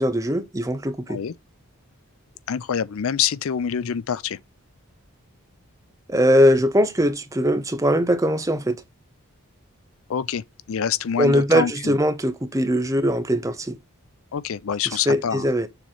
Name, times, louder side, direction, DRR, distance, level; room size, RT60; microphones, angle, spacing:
voice 1, 0.0-1.2 6.1-8.8 11.2-13.8 15.1-15.7, equal, 15° right, 0.6 m, -21 dB
voice 2, 2.5-4.4 10.1-12.0 14.3-15.5, left 8 dB, 70° left, 0.4 m, -26 dB
6.9 x 3.1 x 5.6 m
head